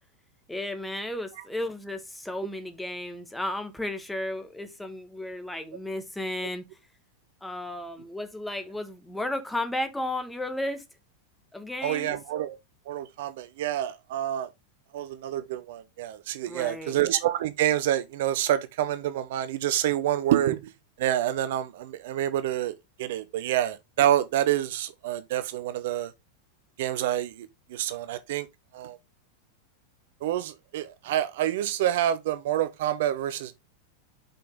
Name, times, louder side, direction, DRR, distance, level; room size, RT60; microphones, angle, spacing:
voice 1, 0.5-6.6 7.4-10.9 11.5-12.2 16.5-17.0, left 1 dB, 5° left, 1.2 m, -34 dB
voice 2, 11.8-12.6 12.9-14.5 14.9-20.7 21.0-26.1 26.8-28.5 28.7-29.0 30.2-33.6, right 12 dB, 55° right, 0.6 m, -27 dB
5.8 x 5.3 x 3.7 m
figure-of-eight pair, 90°, 0 cm